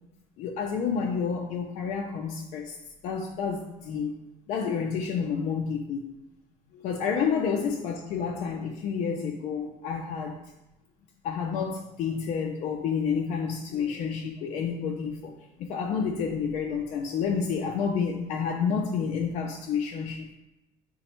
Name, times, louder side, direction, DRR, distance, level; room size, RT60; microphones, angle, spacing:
voice 1, 0.4-2.8 3.0-4.1 4.5-6.1 6.7-10.4 11.2-15.3 15.6-20.3, left 6 dB, 55° left, 2 dB, 0.4 m, -29 dB
4.9 x 2.1 x 4.3 m, 0.96 s
cardioid pair, 175°, 14 cm